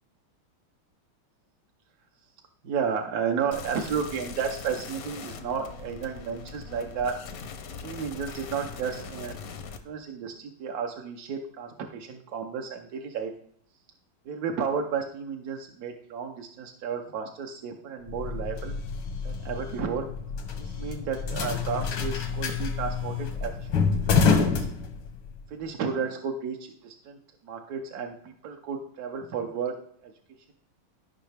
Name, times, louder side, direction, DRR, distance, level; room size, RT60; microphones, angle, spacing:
voice 1, 2.6-7.2 7.8-13.3 14.2-18.8 19.2-20.1 20.6-24.7 25.5-27.2 27.4-29.7 30.0-30.1, right 6 dB, 60° right, 3 dB, 1.0 m, -33 dB
sound 1, 3.5-9.8, left 5 dB, 60° left, 0.9 m, -41 dB
sound 2, 18.1-25.4, left 5 dB, 85° left, 1.9 m, -28 dB
13.5 x 5.6 x 3.3 m, 0.66 s
omnidirectional pair, 2.3 m